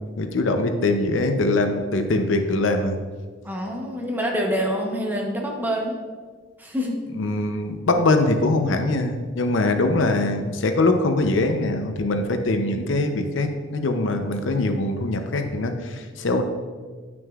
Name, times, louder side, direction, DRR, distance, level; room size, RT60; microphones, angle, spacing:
voice 1, 0.2-3.0 7.2-16.4, left 2 dB, 85° left, 6 dB, 0.6 m, -22 dB
voice 2, 3.4-6.0 6.6-6.9, equal, 10° right, -1 dB, 0.8 m, -26 dB
9.2 x 6.0 x 2.4 m, 1.5 s
head